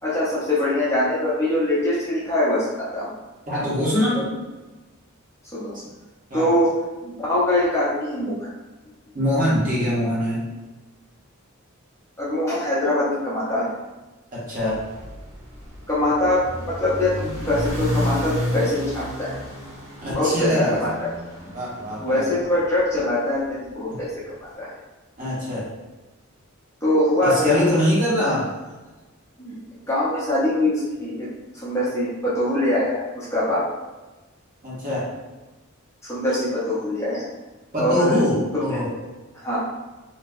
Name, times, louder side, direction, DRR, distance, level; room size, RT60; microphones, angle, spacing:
voice 1, 0.0-3.1 5.5-5.7 6.3-6.7 7.0-8.3 12.2-13.7 15.9-19.4 20.1-21.1 22.0-24.1 24.6-24.7 26.8-27.6 28.2-28.4 29.4-29.6 29.9-33.6 36.0-37.2 37.8-38.2 38.5-38.6 39.3-39.7, left 1 dB, 15° left, -9 dB, 0.8 m, -23 dB
voice 2, 3.5-4.3 5.7-5.8 6.3-6.5 9.1-10.4 14.3-14.8 20.0-20.8 21.5-22.4 23.9-24.0 25.2-25.7 27.2-28.5 34.6-35.1 36.3-36.4 37.7-38.9, equal, 40° right, -8 dB, 1.1 m, -23 dB
sound 1, 14.6-22.9, left 1 dB, 60° right, 1.3 m, -31 dB
2.8 x 2.1 x 3.7 m, 1.2 s
head